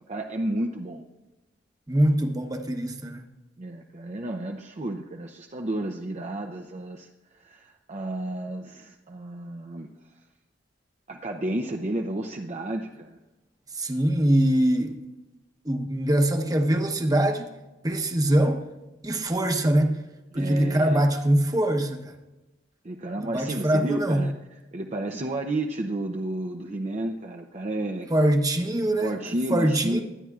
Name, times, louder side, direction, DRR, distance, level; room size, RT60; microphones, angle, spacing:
voice 1, 0.1-1.0 3.6-7.1 7.4-9.9 11.1-13.2 20.3-21.0 22.8-24.3 24.7-28.1 29.0-30.0, right 1 dB, 35° right, 3 dB, 0.6 m, -31 dB
voice 2, 1.9-3.2 13.7-15.0 15.6-17.6 17.8-18.6 19.0-20.0 20.3-22.1 23.2-24.3 28.1-30.0, right 1 dB, 20° right, 5 dB, 1.0 m, -23 dB
23.5 x 9.7 x 2.4 m, 1.1 s
head